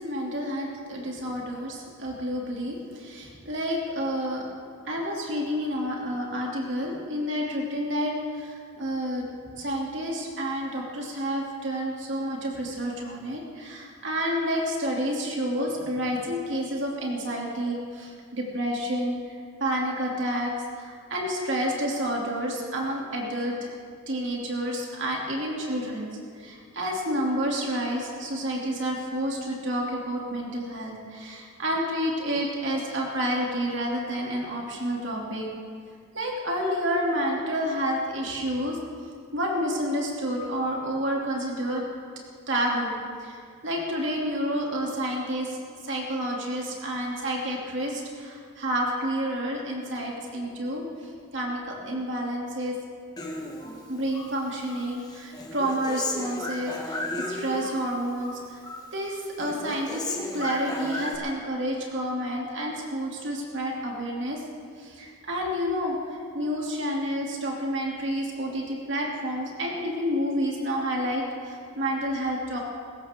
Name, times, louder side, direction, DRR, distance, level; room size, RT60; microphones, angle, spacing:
voice 1, 0.0-4.4 4.9-9.3 9.6-20.5 20.8-23.7 24.1-26.1 26.4-35.5 36.1-38.8 39.3-41.8 42.5-42.9 43.2-45.6 45.8-50.9 51.3-52.8 53.9-58.6 58.9-64.4 64.8-66.0 66.3-72.6, equal, 60° right, -2 dB, 2.9 m, -29 dB
Human voice, 53.2-54.3 54.7-57.9 58.2-58.9 59.2-61.1, left 2 dB, 20° left, 1.4 m, -35 dB
20.5 x 16.0 x 3.8 m, 2.2 s
head